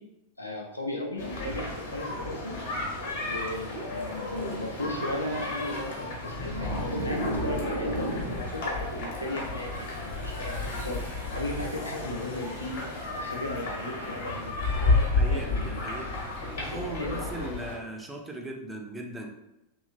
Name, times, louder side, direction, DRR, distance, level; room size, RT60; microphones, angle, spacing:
voice 1, 0.4-2.6 3.2-11.0 11.3-12.8 13.2-15.0 15.3-16.1 16.4-17.2, left 1 dB, 85° left, 0 dB, 0.5 m, -36 dB
sound 1, 1.2-17.8, left 2 dB, 55° left, 1.1 m, -32 dB
sound 2, 6.1-8.6, right 1 dB, 70° right, 0.5 m, -33 dB
voice 2, 15.0-16.2 16.5-19.3, right 1 dB, 10° right, 1 dB, 0.4 m, -38 dB
2.9 x 2.4 x 2.5 m, 0.86 s
figure-of-eight pair, 90°, 0 cm